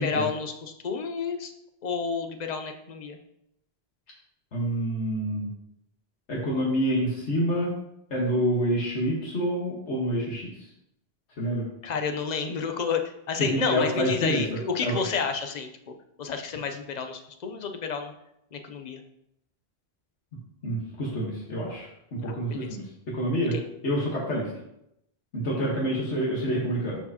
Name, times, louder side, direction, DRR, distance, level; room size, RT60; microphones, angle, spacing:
voice 1, 0.0-1.5 1.8-3.2 11.8-15.7 16.2-18.1 18.5-19.0 22.2-22.8 23.5-23.6 25.5-25.6, left 5 dB, 45° left, 6 dB, 0.7 m, -30 dB
voice 2, 4.5-5.5 6.3-7.7 8.1-10.5 11.4-11.7 13.5-14.4 14.8-14.9 20.6-23.6 23.8-24.5 25.3-27.0, equal, 80° left, -4 dB, 1.7 m, -27 dB
12.5 x 4.6 x 2.9 m, 0.79 s
omnidirectional pair, 1.1 m